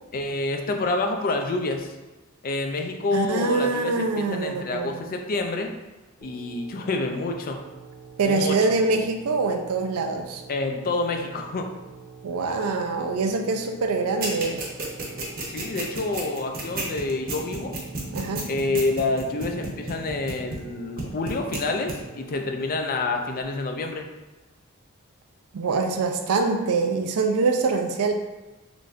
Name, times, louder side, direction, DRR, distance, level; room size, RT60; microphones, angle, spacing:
voice 1, 0.1-1.9 2.4-5.7 6.2-7.6 8.2-8.7 10.5-11.7 15.5-17.8 18.5-24.1, left 2 dB, 40° left, 4 dB, 0.4 m, -28 dB
voice 2, 3.1-5.1 8.2-10.4 12.2-14.6 18.1-18.5 25.5-28.1, right 4 dB, 90° right, 5 dB, 0.5 m, -24 dB
sound 1, 6.2-23.4, right 5 dB, 25° right, 0.4 m, -46 dB
sound 2, 14.2-20.7 21.0-21.6 21.9-22.0, right 3 dB, 45° right, 0.9 m, -31 dB
3.9 x 3.2 x 2.4 m, 1.1 s
head